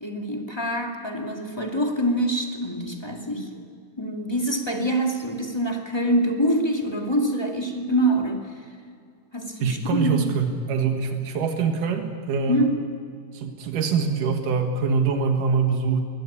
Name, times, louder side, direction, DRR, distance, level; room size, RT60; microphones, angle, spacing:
voice 1, 0.0-3.5 4.0-8.4 9.3-10.3 12.5-12.8, right 1 dB, 10° left, 1 dB, 1.7 m, -25 dB
voice 2, 9.6-12.6 13.3-16.0, right 5 dB, 85° right, 4 dB, 3.2 m, -24 dB
22.5 x 18.5 x 8.7 m, 2.4 s
omnidirectional pair, 3.6 m